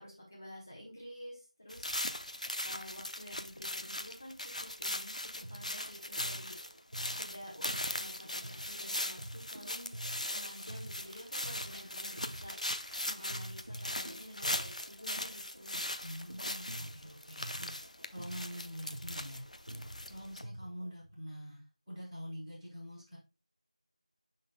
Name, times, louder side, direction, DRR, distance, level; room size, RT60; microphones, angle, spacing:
voice 1, 0.0-6.6 7.1-15.8, equal, 25° left, -4 dB, 1.2 m, -50 dB
sound 1, 1.7-20.4, left 1 dB, 80° left, 0.7 m, -39 dB
sound 2, 5.2-12.9 13.3-20.9, right 1 dB, 35° right, 0.4 m, -48 dB
sound 3, 10.0-15.4, equal, 75° right, 2.0 m, -60 dB
voice 2, 16.0-17.7 18.1-19.4 20.1-23.2, equal, ahead, -20 dB, 1.8 m, -45 dB
11.0 x 3.9 x 2.3 m, 0.30 s
figure-of-eight pair, 180°, 4 cm